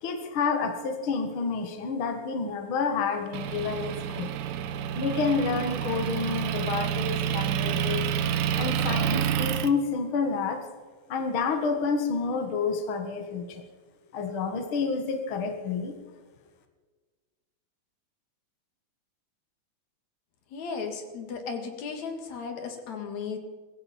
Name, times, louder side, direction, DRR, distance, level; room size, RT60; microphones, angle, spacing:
voice 1, 0.0-4.3 5.0-8.1 8.6-10.6 11.1-13.6 14.1-16.0, left 5 dB, 50° left, 5 dB, 2.1 m, -29 dB
Motor vehicle (road) / Engine, 3.3-9.7, right 9 dB, 85° right, 2.3 m, -28 dB
voice 2, 20.5-23.4, left 5 dB, 70° left, 5 dB, 3.2 m, -35 dB
20.5 x 16.0 x 4.3 m, 1.4 s
omnidirectional pair, 3.3 m